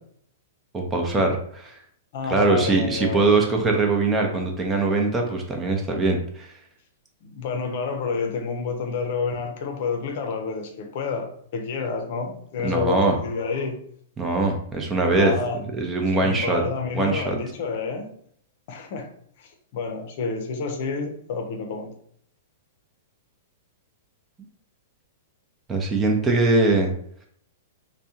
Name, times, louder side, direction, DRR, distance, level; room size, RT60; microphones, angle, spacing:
voice 1, 0.7-1.8 2.3-6.5 12.6-13.2 14.2-15.3 15.7-16.6 16.9-17.3 25.7-26.9, right 3 dB, 20° right, 2 dB, 0.7 m, -22 dB
voice 2, 2.1-3.4 7.2-13.8 15.2-15.6 16.2-18.1 18.7-19.1 19.4-21.9, left 4 dB, 55° left, 4 dB, 0.6 m, -29 dB
3.4 x 2.2 x 2.8 m, 0.62 s
hypercardioid pair, 110°, 0 cm